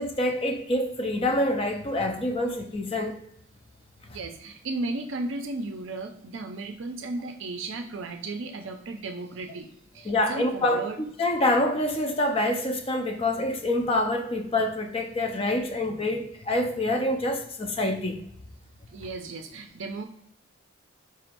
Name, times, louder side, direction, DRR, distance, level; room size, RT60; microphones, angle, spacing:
voice 1, 0.0-3.2 10.1-10.8 11.2-18.2, left 1 dB, 30° left, 0.5 m, -26 dB
voice 2, 4.1-11.0 18.9-20.0, right 2 dB, 70° right, 0.4 m, -35 dB
4.7 x 4.4 x 2.6 m
head